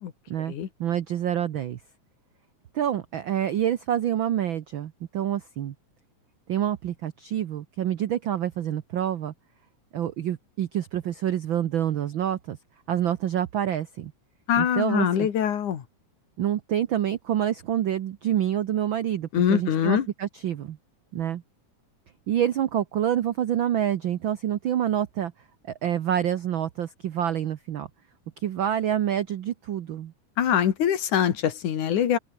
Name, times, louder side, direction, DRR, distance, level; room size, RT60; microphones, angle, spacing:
voice 1, 0.8-1.8 2.7-5.7 6.5-9.3 9.9-12.6 12.9-14.1 14.6-15.3 16.4-20.8 21.1-21.4 22.3-25.3 25.8-27.9 28.4-30.1, right 10 dB, 85° right, 1.0 m, -27 dB
voice 2, 14.5-15.8 19.3-20.1 30.4-32.2, left 9 dB, 75° left, 3.4 m, -23 dB
open air
omnidirectional pair, 3.5 m